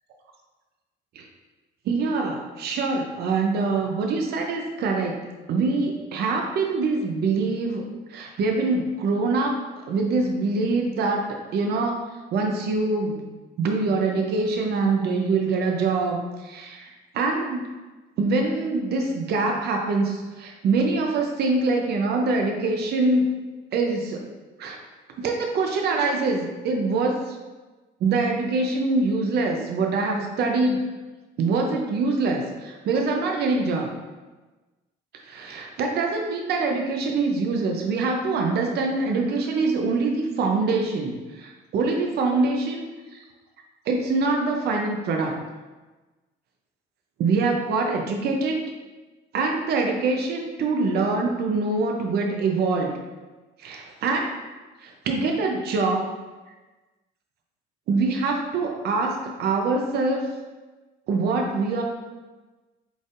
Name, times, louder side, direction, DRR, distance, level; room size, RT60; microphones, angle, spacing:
voice 1, 1.9-7.8 8.1-9.6 9.8-12.0 12.3-13.2 13.6-17.6 18.2-23.3 23.7-24.2 24.6-24.8 25.2-27.4 28.0-30.8 31.4-33.9 35.2-42.8 43.1-43.2 43.9-45.4 47.2-48.6 49.3-53.0 53.6-54.4 54.8-56.0 57.9-60.3 61.1-61.8, right 3 dB, 55° right, 2 dB, 0.6 m, -24 dB
4.2 x 3.4 x 2.5 m, 1.2 s
cardioid pair, 110°, 20 cm